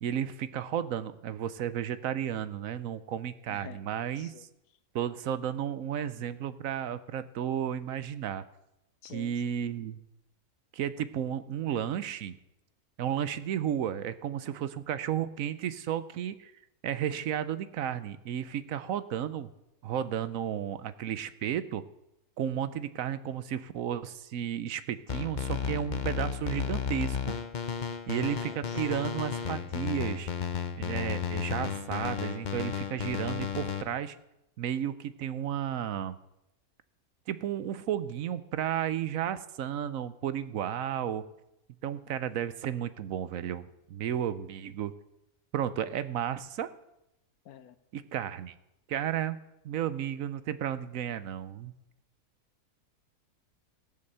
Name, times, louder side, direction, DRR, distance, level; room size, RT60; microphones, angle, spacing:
voice 1, 0.0-4.5 4.9-8.4 9.1-10.0 10.7-12.4 13.0-16.5 16.8-19.5 19.8-21.8 22.4-27.3 28.1-30.3 30.8-34.2 34.6-36.2 37.3-41.2 41.8-44.9 45.5-46.7 47.9-48.5 48.9-49.4 49.6-51.8, right 9 dB, 65° right, 14 dB, 1.1 m, -33 dB
voice 2, 3.5-3.8 4.2-4.4 9.0-9.3 21.4-21.5 22.5-22.8 28.2-28.8 47.4-47.8, left 10 dB, 75° left, 13 dB, 1.2 m, -49 dB
sound 1, 25.1-33.8, left 7 dB, 40° left, 0.8 m, -33 dB
17.0 x 7.2 x 6.7 m, 0.86 s
omnidirectional pair, 1.6 m